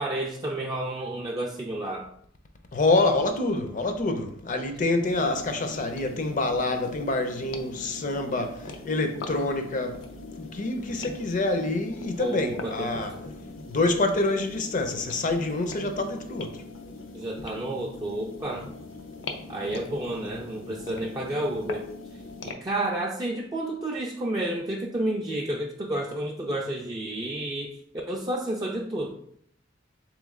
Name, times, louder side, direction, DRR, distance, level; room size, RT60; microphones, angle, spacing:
voice 1, 0.0-2.1 4.8-4.9 12.2-13.0 17.1-18.8 19.5-21.9 22.4-27.8 28.1-29.2, right 1 dB, 20° right, 0.4 m, -31 dB
voice 2, 2.7-13.2 13.7-16.6, left 2 dB, 45° left, 0.5 m, -27 dB
sound 1, 5.0-22.5, left 3 dB, 85° left, 0.5 m, -41 dB
3.7 x 3.1 x 3.6 m
head